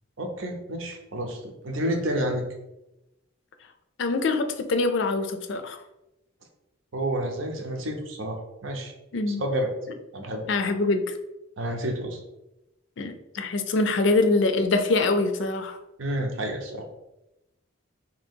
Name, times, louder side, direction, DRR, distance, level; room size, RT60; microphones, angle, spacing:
voice 1, 0.2-2.4 6.9-8.9 9.3-9.7 10.1-10.4 11.6-12.2 16.0-16.9, right 1 dB, 75° right, 3 dB, 0.7 m, -30 dB
voice 2, 4.0-5.8 9.1-9.4 10.5-11.1 13.0-15.8, left 3 dB, 60° left, 7 dB, 0.4 m, -24 dB
2.8 x 2.8 x 4.4 m, 0.93 s
head